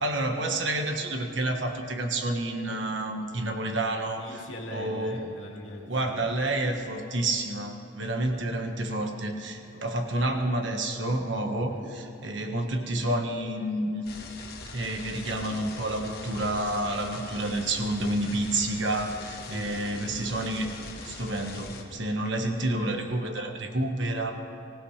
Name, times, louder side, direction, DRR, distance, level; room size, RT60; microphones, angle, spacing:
voice 1, 0.0-4.2 4.7-5.2 5.9-14.0 14.7-20.7 21.0-24.3, right 1 dB, 65° right, 4 dB, 1.5 m, -29 dB
voice 2, 4.2-6.5 11.5-11.9 19.4-19.8, left 1 dB, 70° left, 0 dB, 2.4 m, -42 dB
sound 1, 14.0-21.8, left 3 dB, 50° left, 1.5 m, -42 dB
25.0 x 16.5 x 3.4 m, 2.7 s
head